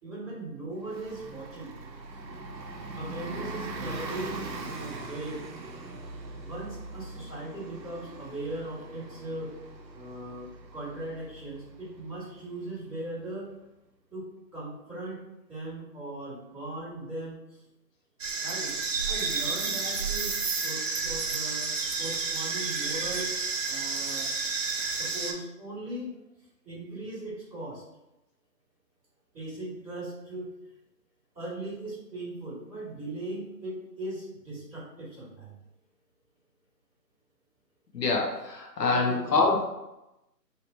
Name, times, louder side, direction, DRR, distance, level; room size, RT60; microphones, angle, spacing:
voice 1, 0.0-1.7 2.9-5.4 6.4-9.5 9.9-13.5 14.1-14.3 14.5-15.2 15.5-17.6 18.4-18.7 19.1-20.4 20.6-23.3 23.6-24.3 24.9-26.1 26.6-27.8 29.3-30.5 31.3-35.5 38.9-39.3, right 2 dB, 5° left, -27 dB, 0.7 m, -39 dB
Bus, 0.8-13.1, right 2 dB, 80° right, 0.8 m, -41 dB
sound 1, 18.2-25.3, right 4 dB, 50° right, 0.5 m, -30 dB
voice 2, 37.9-39.6, left 3 dB, 75° left, 0 dB, 0.9 m, -25 dB
3.0 x 2.9 x 2.7 m, 0.94 s
figure-of-eight pair, 155°, 50 cm